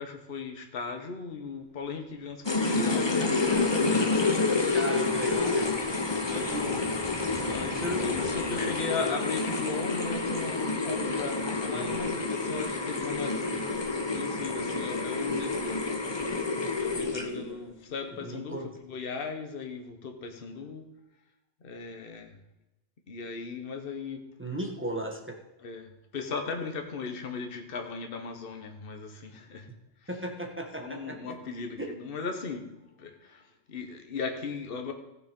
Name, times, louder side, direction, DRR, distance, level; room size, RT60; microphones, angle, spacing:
voice 1, 0.0-4.6 6.3-6.9 7.5-13.7 14.1-15.9 16.7-20.8 21.6-22.4 23.1-24.2 25.6-29.7 30.0-30.1 30.8-34.9, left 4 dB, 50° left, 5 dB, 1.2 m, -37 dB
sound 1, 1.7-8.8, right 1 dB, 35° right, 2.9 m, -48 dB
sound 2, 2.4-17.5, left 3 dB, 25° left, 0.9 m, -29 dB
voice 2, 4.7-5.7 6.3-6.8 7.7-8.0 11.7-12.0 18.2-18.7 24.4-25.2 30.1-31.4 31.8-31.9, right 1 dB, 10° right, 1 dB, 1.4 m, -35 dB
14.5 x 6.3 x 5.2 m, 0.93 s
omnidirectional pair, 1.2 m